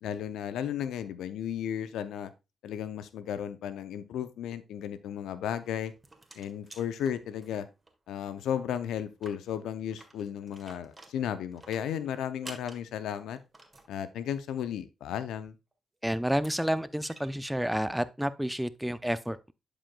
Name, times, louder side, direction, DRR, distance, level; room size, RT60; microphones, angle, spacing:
voice 1, 0.0-2.3 2.6-5.9 6.4-7.7 8.1-13.4 13.9-15.5, left 9 dB, 75° left, 0.5 m, -34 dB
sound 1, 5.6-7.9 8.2-8.3 8.6-8.7 9.1-13.9 15.7-15.8 16.3-17.3, right 2 dB, 25° right, 1.8 m, -51 dB
voice 2, 16.0-19.5, equal, 5° right, 0.6 m, -30 dB
11.0 x 5.0 x 2.3 m
hypercardioid pair, 45°, 0 cm